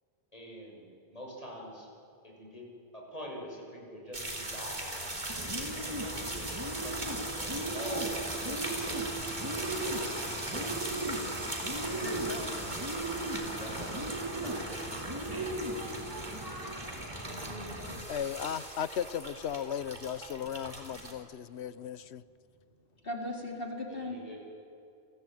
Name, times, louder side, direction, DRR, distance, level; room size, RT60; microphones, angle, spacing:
voice 1, 0.3-0.8 1.1-1.9 2.2-2.6 2.9-5.1 5.3-5.6 6.0-8.9 9.6-11.5 12.9-13.0 13.6-14.1 14.4-15.5 23.9-24.4, equal, 35° left, 7.1 m, -46 dB
sound 1, 4.1-21.1, right 1 dB, 45° right, 3.7 m, -39 dB
Bird, 5.3-18.0, right 1 dB, 20° right, 2.7 m, -38 dB
voice 2, 11.8-12.7 17.2-18.0 23.0-24.2, left 1 dB, 60° left, 4.2 m, -39 dB
voice 3, 18.1-22.2, left 9 dB, 90° left, 1.1 m, -36 dB
29.5 x 21.0 x 9.2 m
omnidirectional pair, 1.1 m